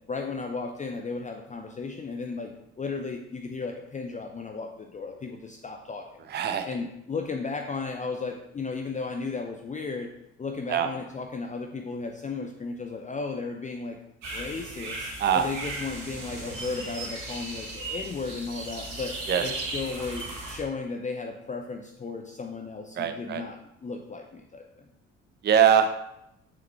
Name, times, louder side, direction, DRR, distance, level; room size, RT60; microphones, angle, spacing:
voice 1, 0.1-2.5 2.8-6.1 6.6-10.1 10.4-14.0 14.3-19.1 19.4-24.6, left 4 dB, 20° left, 2 dB, 0.7 m, -35 dB
voice 2, 6.3-6.7 10.7-10.9 15.2-15.4 19.3-19.4 23.0-23.4 25.4-26.1, right 8 dB, 30° right, 8 dB, 0.6 m, -22 dB
sound 1, 14.2-20.6, right 2 dB, 55° right, 1.9 m, -37 dB
6.9 x 6.3 x 3.4 m, 0.80 s
figure-of-eight pair, 45°, 37 cm